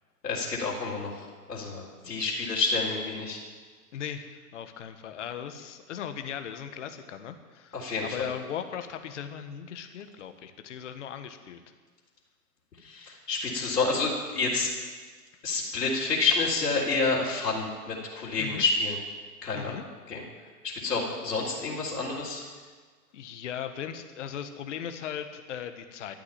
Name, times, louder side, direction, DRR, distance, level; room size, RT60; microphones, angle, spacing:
voice 1, 0.2-3.4 7.7-8.3 12.8-14.7 15.4-19.0 19.4-19.8 20.1-20.2 20.6-22.4, left 3 dB, 80° left, -5 dB, 3.9 m, -29 dB
voice 2, 2.0-2.3 3.9-11.6 18.4-18.6 19.5-19.8 22.6-22.7 23.1-26.2, left 8 dB, 50° left, 8 dB, 1.5 m, -38 dB
12.5 x 9.5 x 9.0 m, 1.5 s
hypercardioid pair, 150°, 47 cm